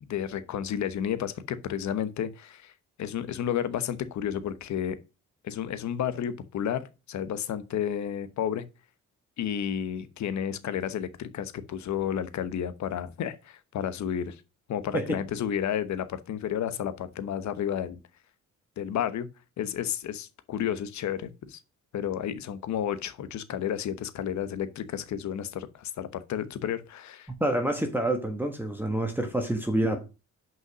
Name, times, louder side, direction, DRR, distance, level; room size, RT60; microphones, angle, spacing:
voice 1, 0.0-2.7 3.0-5.0 5.4-8.6 9.4-14.4 14.7-18.0 18.8-19.3 19.6-21.6 21.9-27.3, left 9 dB, 65° left, 1.1 m, -31 dB
voice 2, 27.4-30.0, right 1 dB, 5° right, 1.5 m, -27 dB
6.3 x 5.4 x 6.1 m
cardioid pair, 90°, 30 cm